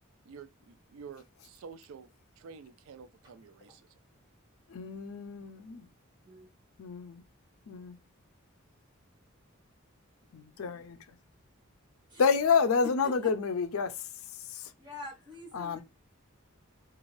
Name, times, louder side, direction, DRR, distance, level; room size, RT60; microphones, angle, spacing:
voice 1, 0.3-3.8, right 6 dB, 75° right, 0.4 m, -49 dB
voice 2, 4.7-5.9 6.8-7.2 7.7-8.0 10.3-11.2 12.2-14.7 15.5-15.8, left 5 dB, 85° left, 0.4 m, -29 dB
voice 3, 14.8-15.8, left 1 dB, 20° right, 1.1 m, -45 dB
2.5 x 2.3 x 3.1 m
head